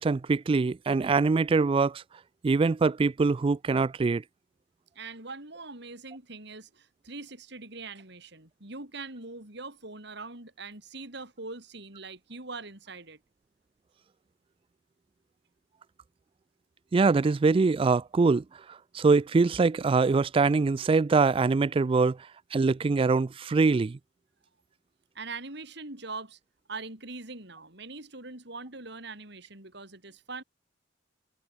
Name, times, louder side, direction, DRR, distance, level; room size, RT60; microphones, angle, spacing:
voice 1, 0.0-2.0 2.4-4.2 16.9-22.2 22.5-24.0, right 4 dB, 30° right, 0.3 m, -23 dB
voice 2, 4.9-13.2 25.1-26.4 26.7-30.4, right 3 dB, 65° right, 6.0 m, -42 dB
head